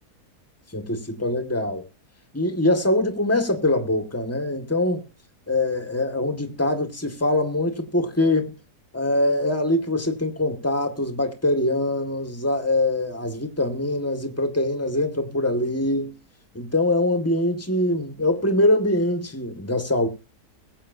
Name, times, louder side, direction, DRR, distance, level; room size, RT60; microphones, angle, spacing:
voice 1, 0.7-1.9 2.3-5.0 5.5-8.5 8.9-16.2 16.5-20.1, left 1 dB, 10° left, 1.9 m, -23 dB
22.0 x 8.7 x 2.7 m
omnidirectional pair, 1.7 m